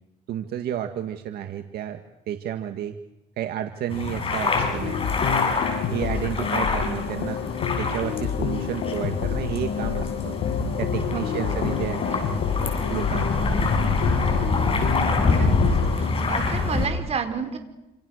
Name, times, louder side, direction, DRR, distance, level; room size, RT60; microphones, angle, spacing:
voice 1, 0.3-2.0 2.3-3.0 3.4-5.1 5.9-7.4 7.8-10.4 10.8-12.0 12.9-13.6, right 10 dB, 70° right, 6 dB, 2.0 m, -31 dB
sound 1, 3.9-16.9, left 3 dB, 35° left, 7.9 m, -26 dB
sound 2, 4.5-16.1, left 7 dB, 70° left, 2.6 m, -29 dB
voice 2, 11.1-12.2 15.3-15.5 15.9-17.6, right 5 dB, 40° right, 6 dB, 4.9 m, -32 dB
29.0 x 27.5 x 6.6 m, 0.93 s
cardioid pair, 110°, 17 cm